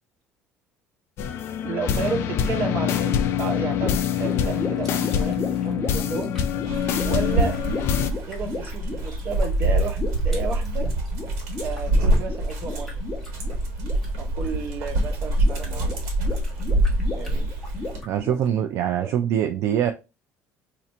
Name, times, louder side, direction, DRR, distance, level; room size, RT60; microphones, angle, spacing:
sound 1, 1.2-8.1, left 9 dB, 55° left, 0.4 m, -25 dB
voice 1, 1.6-6.3 7.0-7.6 8.3-10.9 11.6-13.0 14.2-15.9 17.1-17.5 19.0-19.1, right 5 dB, 40° right, 5 dB, 0.7 m, -32 dB
sound 2, 3.7-18.5, left 3 dB, 5° left, 1.1 m, -36 dB
Dog, 6.7-18.0, right 1 dB, 80° right, 1.4 m, -25 dB
voice 2, 18.1-19.9, right 10 dB, 60° right, 7 dB, 0.3 m, -23 dB
2.9 x 2.5 x 4.1 m, 0.27 s
cardioid pair, 155°, 5 cm